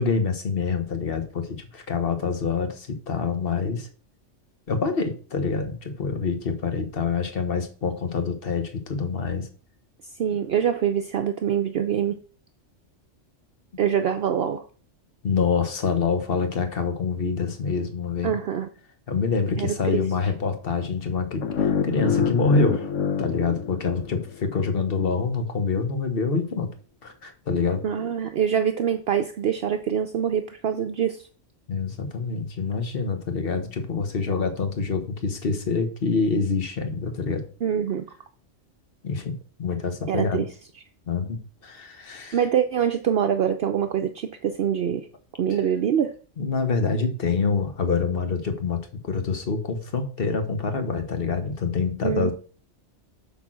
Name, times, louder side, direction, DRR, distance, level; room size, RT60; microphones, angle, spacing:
voice 1, 0.0-3.9 4.7-9.5 15.2-18.4 19.1-22.9 23.2-26.7 27.0-27.8 31.7-37.4 39.0-40.5 41.1-41.4 41.6-42.4 45.5-45.6 46.4-52.3, left 5 dB, 50° left, 7 dB, 1.3 m, -26 dB
voice 2, 10.2-12.2 13.8-14.6 18.2-18.7 19.6-20.0 27.8-31.3 37.6-38.1 40.1-40.5 42.3-45.1 45.4-46.1 52.0-52.3, right 8 dB, 60° right, 7 dB, 0.8 m, -24 dB
sound 1, 21.4-24.5, left 6 dB, 85° left, 1.2 m, -26 dB
8.1 x 3.9 x 6.2 m, 0.40 s
omnidirectional pair, 1.2 m